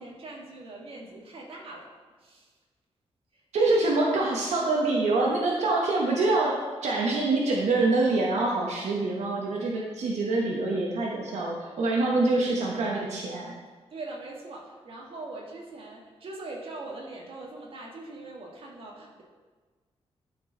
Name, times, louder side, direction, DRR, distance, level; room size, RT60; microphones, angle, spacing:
voice 1, 0.0-1.9 2.2-2.5 3.3-3.8 13.9-19.2, right 2 dB, 55° right, -2 dB, 1.7 m, -42 dB
voice 2, 3.5-13.5, right 2 dB, 90° right, -2 dB, 1.1 m, -25 dB
11.5 x 4.6 x 3.9 m, 1.4 s
wide cardioid pair, 150°, 11 cm